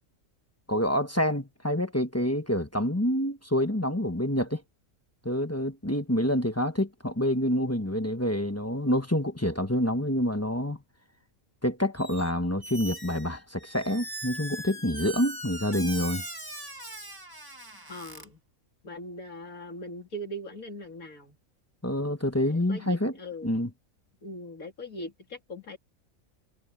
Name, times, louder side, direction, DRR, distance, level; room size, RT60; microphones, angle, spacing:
voice 1, 0.7-4.6 5.2-10.8 11.6-16.2 21.8-23.1 23.4-23.7, left 1 dB, 10° left, 1.1 m, -27 dB
Squeak, 12.0-12.3 12.6-18.3, right 1 dB, 15° right, 1.9 m, -40 dB
voice 2, 17.9-18.4 18.8-21.4 22.4-23.6 24.2-25.8, equal, 90° left, 3.9 m, -40 dB
omnidirectional pair, 1.4 m